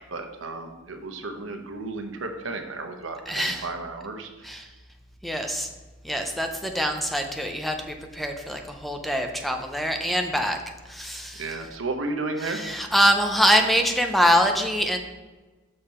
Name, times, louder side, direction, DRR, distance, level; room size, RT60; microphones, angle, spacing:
voice 1, 0.0-4.5 11.4-12.6, right 3 dB, 75° right, 5 dB, 0.9 m, -33 dB
voice 2, 3.3-3.7 4.4-4.7 5.2-5.7 6.0-10.6 10.9-11.6 12.4-15.0, equal, ahead, 4 dB, 0.5 m, -24 dB
6.6 x 5.5 x 4.3 m, 1.2 s
head